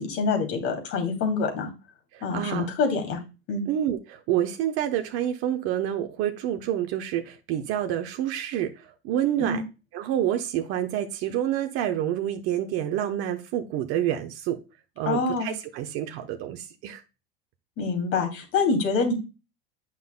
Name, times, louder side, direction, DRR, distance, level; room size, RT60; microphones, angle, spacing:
voice 1, 0.0-1.7 2.2-3.2 3.5-3.6 9.4-9.6 15.1-15.5 17.8-19.1, left 4 dB, 50° left, 3 dB, 2.8 m, -26 dB
voice 2, 2.1-2.7 3.7-9.6 9.9-14.6 15.0-17.0, right 11 dB, 50° right, 6 dB, 0.9 m, -28 dB
9.2 x 5.6 x 2.2 m, 0.30 s
hypercardioid pair, 90°, 30 cm